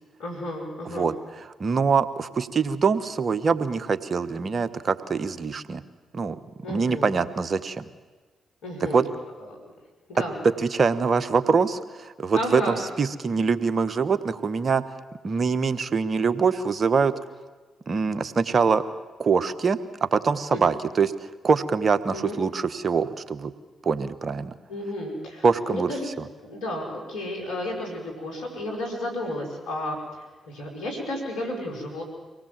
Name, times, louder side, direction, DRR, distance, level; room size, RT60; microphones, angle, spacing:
voice 1, 0.2-1.1 6.6-7.1 8.6-9.0 9.4-9.6 10.1-10.4 12.3-12.8 20.5-20.8 22.1-22.4 24.7-26.1 26.4-30.0 30.4-32.0, left 1 dB, 80° left, 0 dB, 4.9 m, -32 dB
voice 2, 1.6-5.8 6.1-6.4 6.7-7.8 8.9-9.0 10.6-14.8 15.2-17.1 17.9-18.8 19.2-19.8 20.1-21.1 21.4-23.5 23.8-24.5 25.4-25.9, right 5 dB, 50° right, 13 dB, 1.2 m, -24 dB
24.5 x 18.0 x 7.6 m, 1.3 s
hypercardioid pair, 40°, 0 cm